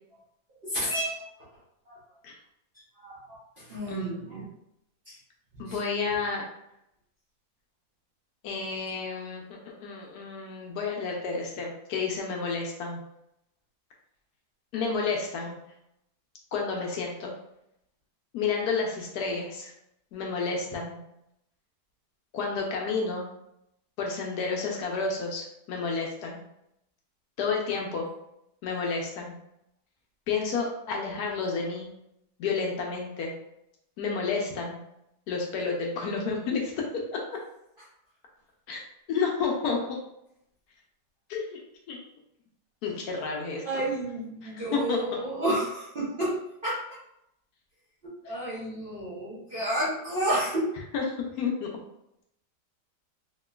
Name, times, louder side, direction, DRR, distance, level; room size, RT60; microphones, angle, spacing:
voice 1, 0.7-1.2 1.9-2.0 3.0-4.4 5.1-5.2 5.7-5.8 43.6-46.8 48.2-50.7, right 1 dB, 45° right, -9 dB, 0.7 m, -31 dB
voice 2, 5.6-6.4 8.4-13.0 14.7-15.6 16.5-17.3 18.3-19.7 20.1-21.0 22.3-23.3 24.0-26.4 27.4-28.1 28.6-29.3 30.3-31.9 32.4-33.3 34.0-34.8 35.3-37.2 38.7-38.8 39.1-40.0 41.3-41.6 41.9-42.0 42.8-43.8 44.4-45.0 48.3-48.4 50.9-51.7, left 4 dB, 75° left, 0 dB, 1.0 m, -30 dB
3.0 x 2.8 x 2.2 m, 0.79 s
omnidirectional pair, 1.8 m